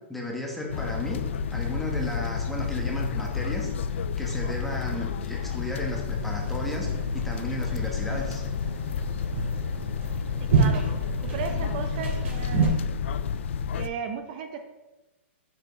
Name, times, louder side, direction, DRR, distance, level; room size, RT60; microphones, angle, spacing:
voice 1, 0.1-1.2 1.5-3.7 4.2-8.4, left 1 dB, ahead, -1 dB, 1.1 m, -34 dB
sound 1, 0.7-13.9, left 6 dB, 70° left, 0.4 m, -30 dB
sound 2, 6.1-12.7, right 4 dB, 80° right, 2.8 m, -29 dB
voice 2, 10.4-10.8 11.3-12.8 13.8-14.6, right 6 dB, 45° right, 6 dB, 0.6 m, -35 dB
6.6 x 5.1 x 5.0 m, 1.1 s
hypercardioid pair, 160°, 7 cm